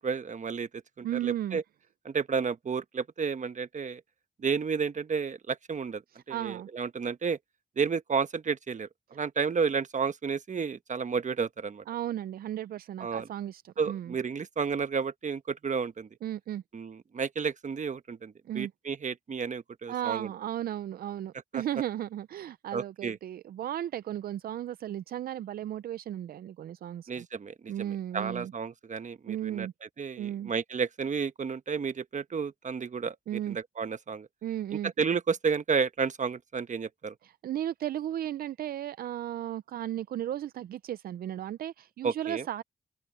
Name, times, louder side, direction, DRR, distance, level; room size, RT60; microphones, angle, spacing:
voice 1, 0.0-1.6 2.0-4.0 4.4-6.0 6.3-7.4 7.8-11.8 13.0-13.3 13.8-16.1 16.7-20.3 21.5-21.6 22.7-23.2 27.1-29.7 30.0-33.2 33.5-34.3 34.8-37.1 42.0-42.4, right 5 dB, 55° right, 1.2 m, -31 dB
voice 2, 1.0-1.6 6.1-6.7 11.9-14.2 16.2-16.6 18.5-18.7 19.9-27.3 27.7-28.5 29.3-29.7 30.2-30.5 33.3-33.6 34.4-34.9 37.2-42.6, right 11 dB, 80° right, 0.4 m, -35 dB
open air
cardioid pair, 50°, 15 cm